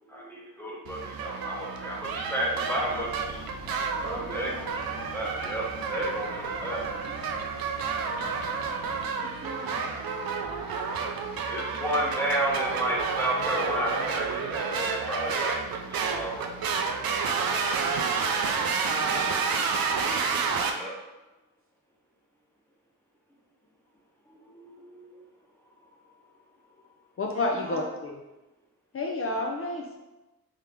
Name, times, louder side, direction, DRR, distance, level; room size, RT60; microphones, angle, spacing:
voice 1, 0.0-3.4 4.0-7.2 11.5-15.6 15.9-16.6 20.7-20.9 24.3-25.2, right 1 dB, 5° left, -3 dB, 0.9 m, -32 dB
sound 1, 0.9-20.7, right 5 dB, 80° right, 0.5 m, -30 dB
sound 2, 2.7-9.1, left 3 dB, 90° left, 0.6 m, -46 dB
voice 2, 4.0-4.7 9.1-9.8 17.0-17.6 18.9-19.5 27.3-27.9, right 3 dB, 40° right, -2 dB, 0.8 m, -41 dB
voice 3, 27.2-28.2 28.9-30.0, left 2 dB, 40° left, 0 dB, 0.4 m, -30 dB
3.6 x 2.9 x 3.4 m, 1.0 s
wide cardioid pair, 95°, 35 cm